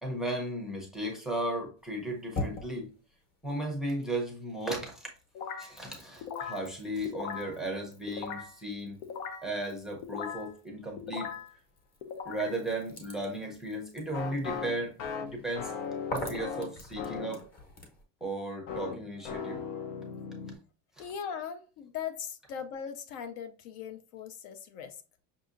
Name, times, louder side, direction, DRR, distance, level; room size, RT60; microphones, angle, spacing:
voice 1, 0.0-2.9 3.4-5.1 5.6-9.0 9.4-11.3 12.2-15.7 16.1-17.4 18.2-19.6 21.0-21.1, right 1 dB, ahead, 0 dB, 0.5 m, -35 dB
sound 1, 1.8-4.4 4.8-18.0, left 1 dB, 25° left, 0.9 m, -45 dB
sound 2, 5.4-5.8 6.2-6.7 7.1-7.6 8.1-8.6 9.0-9.5 10.0-10.5 11.0-11.5 12.0-12.6 14.1-17.4 18.7-20.5, left 6 dB, 85° left, 0.8 m, -38 dB
voice 2, 21.0-25.0, left 7 dB, 60° left, 9 dB, 0.5 m, -39 dB
5.7 x 2.7 x 2.4 m, 0.36 s
cardioid pair, 170°, 37 cm